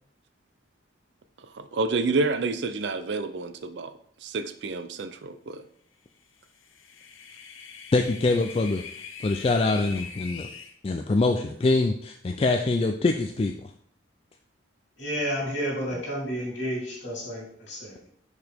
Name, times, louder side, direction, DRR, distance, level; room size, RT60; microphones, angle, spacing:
voice 1, 1.5-3.9 4.2-5.6, right 3 dB, 60° right, 11 dB, 0.4 m, -29 dB
sound 1, 6.4-10.7, left 6 dB, 85° left, 0.8 m, -42 dB
voice 2, 7.9-8.8 9.2-10.5 10.8-13.7, left 3 dB, 30° left, 5 dB, 0.3 m, -24 dB
voice 3, 15.0-18.1, equal, 65° left, -4 dB, 3.0 m, -31 dB
6.5 x 5.1 x 3.5 m, 0.63 s
head